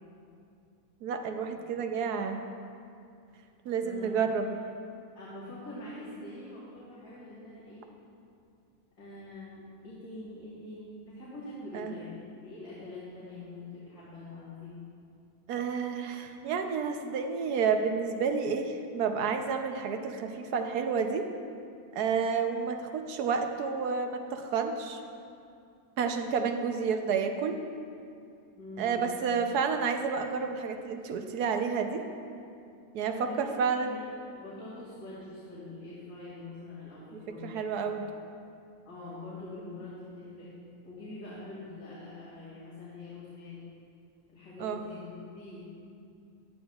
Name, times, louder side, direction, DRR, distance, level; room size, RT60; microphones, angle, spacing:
voice 1, 1.0-2.4 3.6-4.6 11.7-11.9 15.5-21.3 21.9-25.0 26.0-27.6 28.8-32.0 32.9-34.0 37.1-38.1 44.6-44.8, right 5 dB, 85° right, 6 dB, 1.3 m, -30 dB
voice 2, 1.9-2.2 3.8-4.2 5.2-7.9 9.0-12.1 12.4-14.8 28.6-29.1 33.2-34.1 34.3-37.6 38.8-40.5 40.8-43.7 44.3-45.7, left 2 dB, 85° left, -9 dB, 2.8 m, -44 dB
14.5 x 11.0 x 2.4 m, 2.5 s
omnidirectional pair, 1.6 m